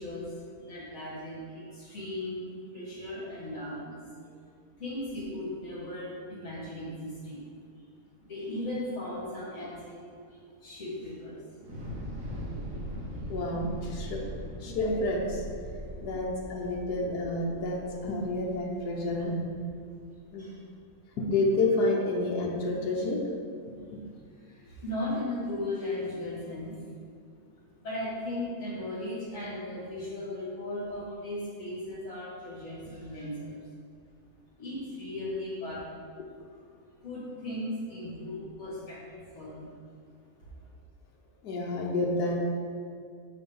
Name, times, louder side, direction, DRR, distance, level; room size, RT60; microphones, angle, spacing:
voice 1, 0.0-2.4 2.7-4.3 4.8-7.5 8.2-11.4 11.8-11.9 12.6-12.7 15.9-16.0 20.4-20.6 23.8-24.1 24.4-26.9 27.8-33.6 34.6-35.8 37.0-39.7, left 1 dB, 55° left, -8 dB, 2.4 m, -37 dB
Thunder / Explosion, 11.6-19.8, equal, 60° right, 1.6 m, -41 dB
voice 2, 13.3-14.2 14.6-15.4 16.0-19.5 20.3-20.5 21.2-23.2 41.4-42.4, left 2 dB, 75° left, -2 dB, 1.5 m, -29 dB
7.7 x 5.0 x 5.4 m, 2.2 s
omnidirectional pair, 1.7 m